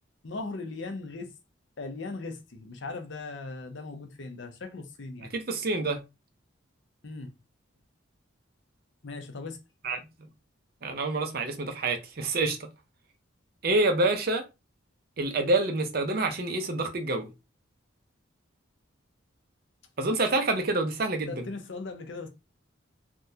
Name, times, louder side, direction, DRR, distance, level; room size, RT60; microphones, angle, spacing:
voice 1, 0.2-1.3 1.8-5.3 7.0-7.3 9.0-9.6 21.3-22.3, left 3 dB, 65° left, 0.6 m, -38 dB
voice 2, 5.3-6.0 9.8-10.0 10.8-12.6 13.6-14.4 15.2-17.3 20.0-21.5, right 2 dB, 50° right, 0.6 m, -27 dB
3.5 x 2.3 x 2.7 m
head